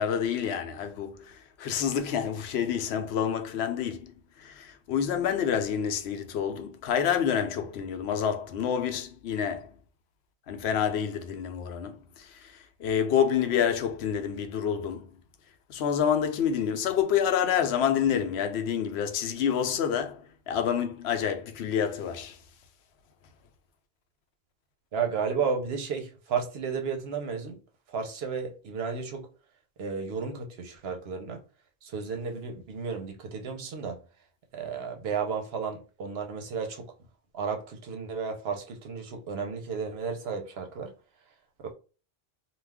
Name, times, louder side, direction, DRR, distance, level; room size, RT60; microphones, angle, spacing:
voice 1, 0.0-4.1 4.4-9.7 10.5-12.5 12.8-15.1 15.7-22.4, left 8 dB, 85° left, 0.8 m, -28 dB
voice 2, 24.9-27.6 27.9-29.3 29.8-31.4 31.8-34.0 34.5-36.9 37.3-40.9, right 5 dB, 75° right, 0.9 m, -33 dB
2.4 x 2.3 x 3.4 m
omnidirectional pair, 1.1 m